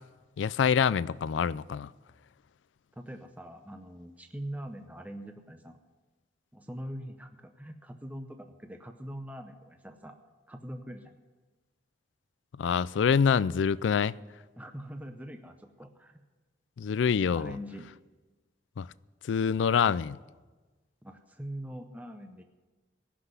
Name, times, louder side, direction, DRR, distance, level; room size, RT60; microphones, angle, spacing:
voice 1, 0.4-1.9 12.6-14.1 16.8-17.6 18.8-18.9 19.3-20.2, left 6 dB, 90° left, 0.4 m, -26 dB
voice 2, 3.0-5.8 6.5-10.2 10.5-11.2 14.6-16.2 17.3-17.9 21.0-22.4, equal, 10° right, 0.7 m, -42 dB
17.5 x 6.0 x 9.6 m
head